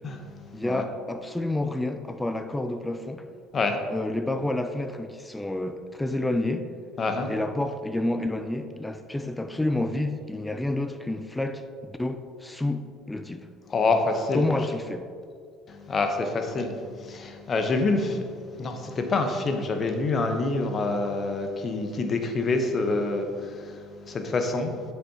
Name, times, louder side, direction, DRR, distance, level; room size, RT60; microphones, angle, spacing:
voice 1, 0.5-3.3 3.9-6.7 7.3-13.5 14.3-15.1, left 1 dB, 10° left, 9 dB, 0.5 m, -29 dB
voice 2, 7.0-7.3 13.7-14.4 15.7-16.7 17.0-18.2 18.6-24.7, left 3 dB, 40° left, 5 dB, 0.9 m, -26 dB
7.8 x 6.6 x 2.9 m, 2.1 s
hypercardioid pair, 65°, 0 cm